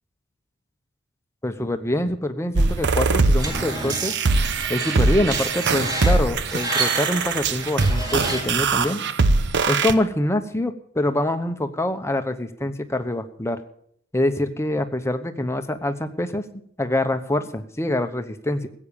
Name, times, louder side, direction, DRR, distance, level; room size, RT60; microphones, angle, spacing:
voice 1, 1.4-4.1 4.7-9.0 9.7-13.6 14.1-16.4 16.8-18.7, left 1 dB, 15° left, 8 dB, 1.0 m, -25 dB
sound 1, 2.6-9.9, right 3 dB, 60° right, 0.8 m, -22 dB
Screech, 3.4-8.7, right 2 dB, 20° right, 3.3 m, -31 dB
15.5 x 8.7 x 7.0 m, 0.65 s
head